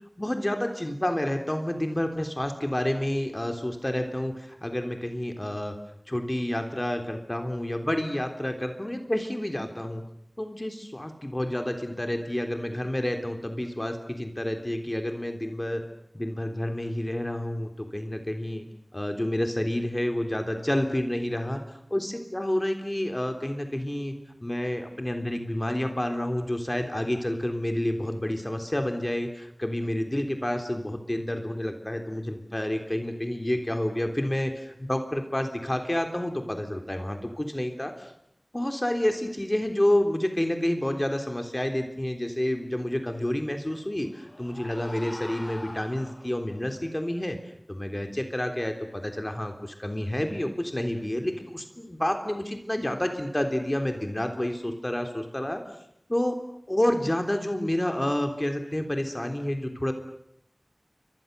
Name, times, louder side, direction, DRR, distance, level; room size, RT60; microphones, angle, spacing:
voice 1, 0.2-5.7 6.1-10.0 10.4-15.8 16.1-18.7 18.9-21.6 21.9-24.1 24.4-38.1 38.5-47.4 47.7-55.6 56.1-56.4 56.7-59.9, left 1 dB, 30° left, 5 dB, 3.5 m, -29 dB
sound 1, 43.7-46.6, left 1 dB, 50° left, 5.1 m, -44 dB
29.5 x 25.0 x 6.9 m, 0.75 s
wide cardioid pair, 45°, 0 cm